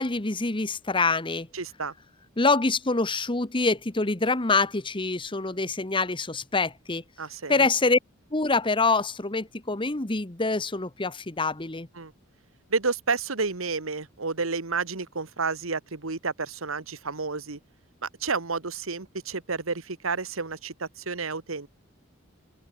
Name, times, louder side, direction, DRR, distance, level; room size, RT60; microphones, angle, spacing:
voice 1, 0.0-1.5 2.4-7.0 7.5-8.0 8.3-11.9, left 3 dB, 25° left, 1.2 m, -25 dB
voice 2, 1.5-1.9 7.2-7.7 11.9-12.1 12.7-17.6 18.0-21.7, right 4 dB, 85° right, 1.7 m, -30 dB
head